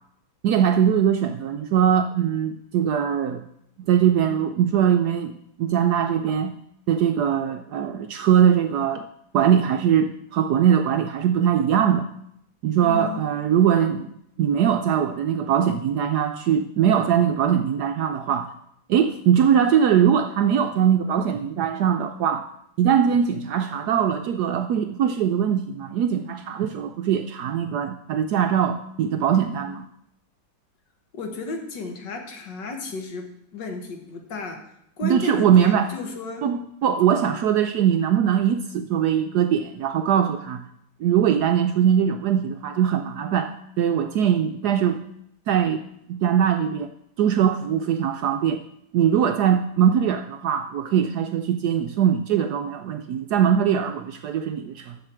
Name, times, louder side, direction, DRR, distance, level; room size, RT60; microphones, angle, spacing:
voice 1, 0.4-3.4 3.9-5.3 5.6-6.5 6.9-9.1 9.3-12.1 12.6-14.1 14.4-18.5 18.9-22.5 22.8-29.9 35.0-35.9 36.4-40.6 41.0-45.0 45.5-45.8 46.1-46.9 47.2-48.6 48.9-54.9, right 9 dB, 75° right, 7 dB, 0.9 m, -21 dB
voice 2, 12.8-13.3 31.1-34.6 35.0-36.5, left 4 dB, 65° left, 4 dB, 2.0 m, -33 dB
7.7 x 6.6 x 7.5 m, 0.75 s
omnidirectional pair, 2.1 m